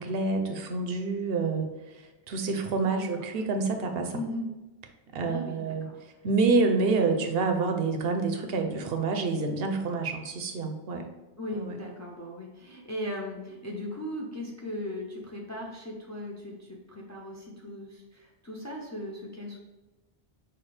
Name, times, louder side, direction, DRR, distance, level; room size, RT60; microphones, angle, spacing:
voice 1, 0.0-1.7 1.9-4.2 5.1-5.9 6.2-11.0 11.5-11.8, right 3 dB, 70° right, 5 dB, 0.8 m, -27 dB
voice 2, 2.8-3.3 4.1-4.5 5.2-6.0 11.4-19.6, left 1 dB, 25° left, -2 dB, 0.4 m, -38 dB
5.9 x 2.3 x 3.1 m, 1.1 s
omnidirectional pair, 1.0 m